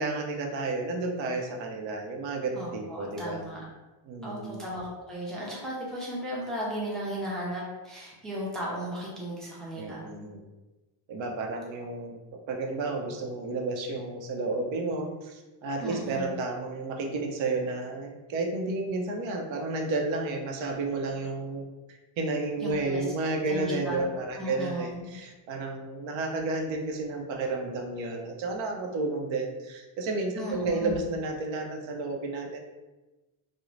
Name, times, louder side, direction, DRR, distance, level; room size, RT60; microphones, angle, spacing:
voice 1, 0.0-3.4 4.1-4.6 9.8-10.4 11.1-21.7 22.2-32.6, right 3 dB, 65° right, 2 dB, 0.6 m, -31 dB
voice 2, 2.6-3.6 4.2-10.1 15.8-16.3 22.6-23.0 23.5-24.1 24.4-25.1 30.4-31.0, equal, ahead, -6 dB, 0.5 m, -35 dB
2.4 x 2.0 x 3.1 m, 1.1 s
cardioid pair, 130°, 49 cm